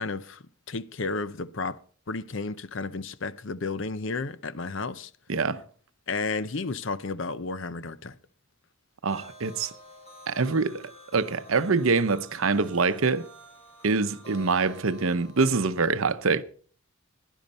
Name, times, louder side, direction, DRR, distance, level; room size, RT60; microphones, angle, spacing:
voice 1, 0.0-1.8 2.1-5.1 6.1-8.2, left 3 dB, 55° left, 0.7 m, -32 dB
voice 2, 5.3-5.6 9.0-9.7 10.3-13.3 13.8-16.4, right 4 dB, 70° right, 0.7 m, -25 dB
sound 1, 9.1-15.9, equal, 30° left, 5.1 m, -49 dB
16.0 x 11.0 x 4.2 m
head